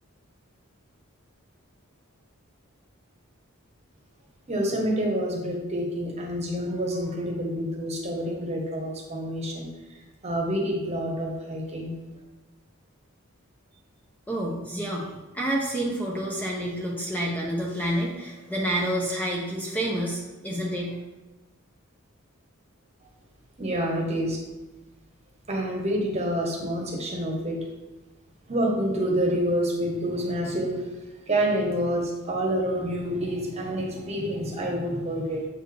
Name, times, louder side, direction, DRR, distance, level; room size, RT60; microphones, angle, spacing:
voice 1, 4.5-9.7 10.2-11.9 23.6-24.4 25.5-27.6 28.5-30.9 31.3-35.5, equal, 30° right, 0 dB, 1.2 m, -27 dB
voice 2, 14.3-21.0, right 1 dB, 10° left, -3 dB, 0.7 m, -29 dB
7.4 x 4.6 x 3.4 m, 1.1 s
head